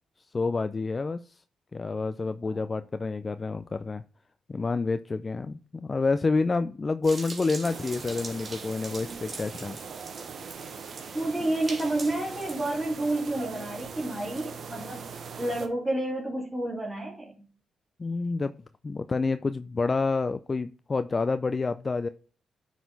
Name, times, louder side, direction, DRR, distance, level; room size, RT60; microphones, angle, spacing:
voice 1, 0.3-1.4 1.7-4.0 4.5-9.8 18.0-18.5 18.8-22.1, left 3 dB, 40° left, 12 dB, 0.4 m, -28 dB
sound 1, 7.0-12.7, right 3 dB, 45° right, 2.6 m, -43 dB
sound 2, 7.6-15.7, right 6 dB, 60° right, 1.0 m, -41 dB
voice 2, 11.1-15.0 15.4-17.4, right 1 dB, 10° right, -4 dB, 2.7 m, -30 dB
9.4 x 4.1 x 4.0 m, 0.39 s
supercardioid pair, 55°, 0 cm